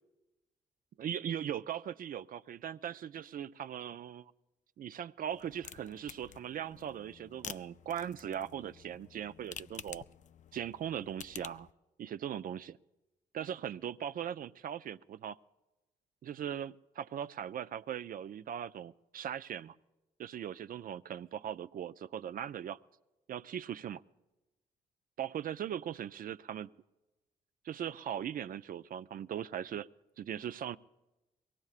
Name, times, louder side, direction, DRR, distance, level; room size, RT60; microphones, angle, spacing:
voice 1, 1.0-4.3 4.8-10.0 10.5-11.7 12.0-12.8 13.3-15.4 16.2-19.8 20.2-22.8 23.3-24.0 25.2-26.7 27.6-29.9 30.2-30.8, right 9 dB, 60° right, 14 dB, 0.4 m, -39 dB
sound 1, 5.3-11.7, left 8 dB, 50° left, 0.4 m, -50 dB
22.5 x 18.5 x 2.4 m, 1.1 s
supercardioid pair, 55°, 17 cm